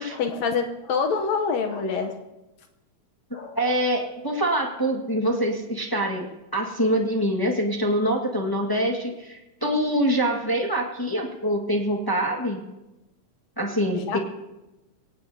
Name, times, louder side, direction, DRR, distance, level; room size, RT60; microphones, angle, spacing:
voice 1, 0.1-2.2 3.3-3.7 13.9-14.2, left 5 dB, 70° left, 5 dB, 2.1 m, -26 dB
voice 2, 3.5-6.3 6.5-12.6 13.6-14.2, equal, 15° left, 0 dB, 0.9 m, -25 dB
23.5 x 18.0 x 2.8 m, 1.0 s
omnidirectional pair, 3.3 m